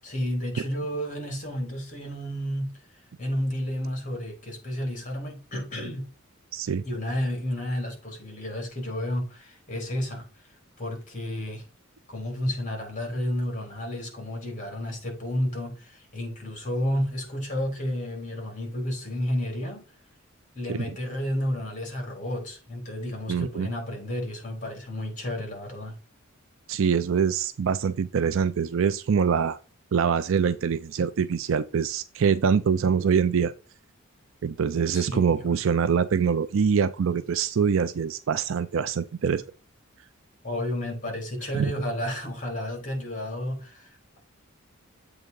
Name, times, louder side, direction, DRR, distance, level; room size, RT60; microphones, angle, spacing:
voice 1, 0.0-2.8 3.2-6.1 6.8-10.3 10.8-11.6 12.1-19.9 20.5-25.9 34.9-35.6 40.4-44.2, equal, 40° left, 3.8 m, -31 dB
voice 2, 6.5-6.8 20.7-21.0 23.3-23.7 26.7-29.6 29.9-33.5 34.4-39.4 41.5-41.7, right 6 dB, 65° right, 0.4 m, -24 dB
7.9 x 3.6 x 5.3 m
head